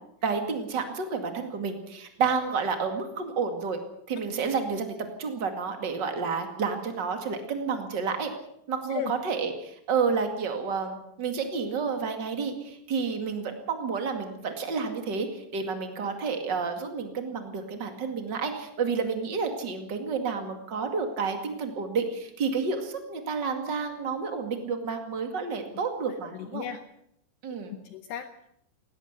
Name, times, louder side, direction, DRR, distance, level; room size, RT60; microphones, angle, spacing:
voice 1, 0.2-3.8 4.1-8.3 8.7-26.6 27.4-27.8, right 5 dB, 70° right, 6 dB, 1.0 m, -30 dB
voice 2, 26.3-26.8 27.7-28.5, left 10 dB, 85° left, 10 dB, 2.3 m, -36 dB
19.0 x 17.5 x 8.1 m, 0.75 s
omnidirectional pair, 6.0 m